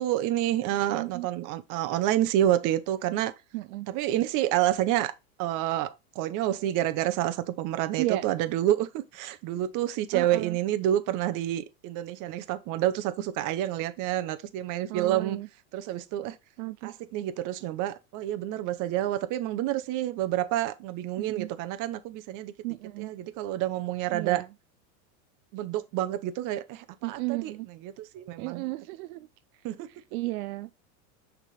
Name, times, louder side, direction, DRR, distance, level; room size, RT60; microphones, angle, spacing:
voice 1, 0.0-3.3 3.9-5.1 5.4-15.4 15.7-16.3 16.8-22.5 23.0-24.4 25.5-28.7 29.6-29.9, right 13 dB, 45° right, 0.9 m, -28 dB
voice 2, 0.9-1.3 3.5-3.9 8.0-8.2 10.1-10.6 14.9-15.5 16.6-16.9 21.2-21.5 22.6-23.1 24.1-24.5 27.0-27.7 28.4-29.3 30.1-30.7, right 20 dB, 80° right, 0.5 m, -33 dB
6.5 x 3.7 x 4.8 m
supercardioid pair, 130°, 44 cm